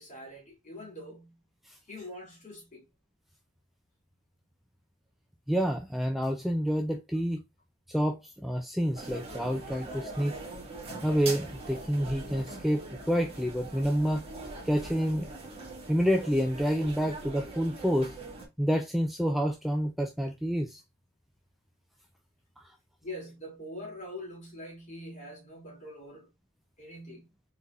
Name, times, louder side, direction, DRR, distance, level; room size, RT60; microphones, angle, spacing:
voice 1, 0.0-1.4 1.9-2.9 23.0-26.3 26.8-27.3, left 1 dB, 35° left, 2.5 m, -44 dB
voice 2, 5.5-7.4 7.9-10.4 11.0-14.2 14.7-15.3 15.9-18.1 18.6-20.8, equal, ahead, 0.4 m, -28 dB
sound 1, 9.0-18.5, right 2 dB, 30° right, 1.4 m, -42 dB
4.0 x 3.8 x 2.3 m
head